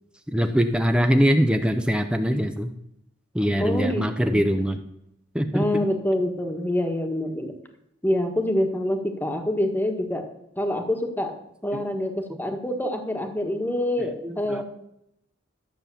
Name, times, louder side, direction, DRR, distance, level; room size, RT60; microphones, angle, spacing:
voice 1, 0.3-2.7 3.3-4.8 5.3-5.8 11.7-11.8 14.2-14.6, equal, 5° right, 7 dB, 0.7 m, -22 dB
voice 2, 3.6-4.5 5.5-7.6 8.0-10.2 10.6-14.6, left 1 dB, 10° left, 5 dB, 1.4 m, -26 dB
12.5 x 7.5 x 6.9 m, 0.80 s
head